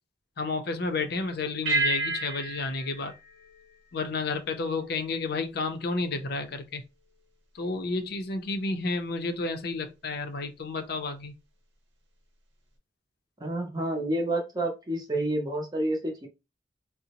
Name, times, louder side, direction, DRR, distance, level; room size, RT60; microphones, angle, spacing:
voice 1, 0.4-3.1 3.9-6.8 7.5-11.3, left 3 dB, 55° left, 0.5 m, -31 dB
sound 1, 1.6-4.4, right 2 dB, 75° right, 1.0 m, -31 dB
voice 2, 13.4-16.3, right 1 dB, 20° right, 0.6 m, -29 dB
3.8 x 2.0 x 2.8 m
head